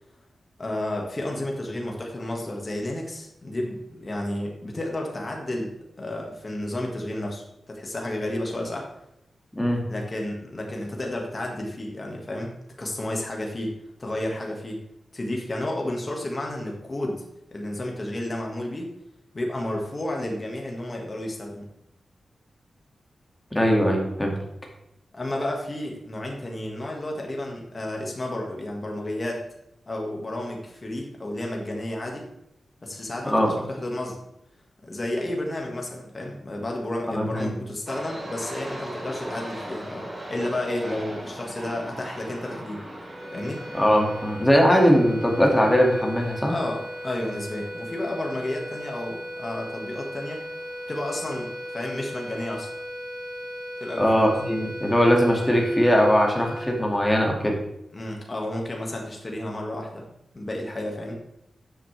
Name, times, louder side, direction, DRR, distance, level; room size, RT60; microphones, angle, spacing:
voice 1, 0.6-8.9 9.9-12.5 12.8-14.8 15.1-18.9 19.3-21.7 25.1-29.4 29.9-32.3 32.8-34.2 34.8-42.9 43.3-43.6 46.5-50.4 50.9-52.7 53.8-54.4 57.9-60.1 60.3-61.1, left 1 dB, 30° left, 0 dB, 1.8 m, -31 dB
voice 2, 23.5-24.3 33.3-33.5 37.2-37.5 43.7-46.5 54.0-57.5, equal, 10° left, 0 dB, 2.2 m, -20 dB
sound 1, 37.9-52.8, right 1 dB, 30° right, 4.0 m, -41 dB
sound 2, 43.0-57.6, equal, 90° right, 3.4 m, -37 dB
12.5 x 7.8 x 3.4 m, 0.80 s
wide cardioid pair, 125°, 0 cm